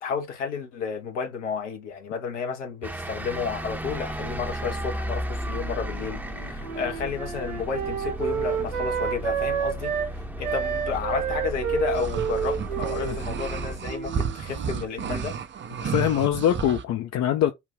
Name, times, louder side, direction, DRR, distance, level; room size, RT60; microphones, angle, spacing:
voice 1, 0.0-15.4, left 6 dB, 75° left, 1.2 m, -32 dB
sound 1, 2.8-13.8, right 1 dB, 5° right, 0.9 m, -34 dB
Wind instrument woodwind instrument, 6.1-10.1 10.4-14.9, right 8 dB, 80° right, 0.9 m, -30 dB
sound 2, 11.9-16.8, right 6 dB, 30° right, 0.7 m, -32 dB
voice 2, 15.8-17.5, left 11 dB, 45° left, 0.8 m, -23 dB
4.7 x 2.6 x 3.5 m
figure-of-eight pair, 50°, 36 cm